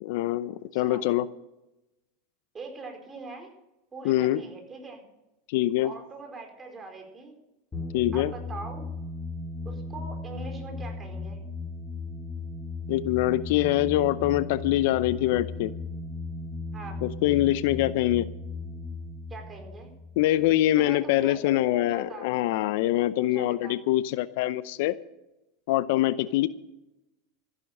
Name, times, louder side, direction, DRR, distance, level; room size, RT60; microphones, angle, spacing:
voice 1, 0.0-1.3 4.0-4.4 5.5-5.9 7.9-8.3 12.9-15.7 17.0-18.3 20.2-24.9 25.7-26.5, left 15 dB, 65° left, 16 dB, 0.6 m, -24 dB
voice 2, 0.7-1.0 2.5-3.5 3.9-5.0 5.8-7.3 8.1-8.9 9.6-11.4 16.7-17.0 19.3-19.9 20.7-22.3 23.2-23.8, right 3 dB, 25° right, 3 dB, 4.5 m, -42 dB
sound 1, 7.7-20.9, left 3 dB, 20° left, 4.6 m, -37 dB
14.0 x 11.0 x 6.6 m, 0.94 s
hypercardioid pair, 100°, 0 cm